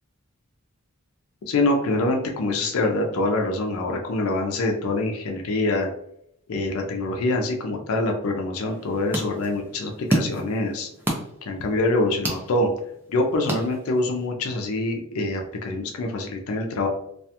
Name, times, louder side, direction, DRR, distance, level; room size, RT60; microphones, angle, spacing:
voice 1, 1.5-5.9 6.5-10.9 11.5-12.7 13.1-16.9, left 2 dB, 80° left, 3 dB, 0.4 m, -25 dB
sound 1, 8.6-14.3, right 1 dB, 10° right, 0.3 m, -31 dB
2.3 x 2.2 x 2.7 m, 0.74 s
head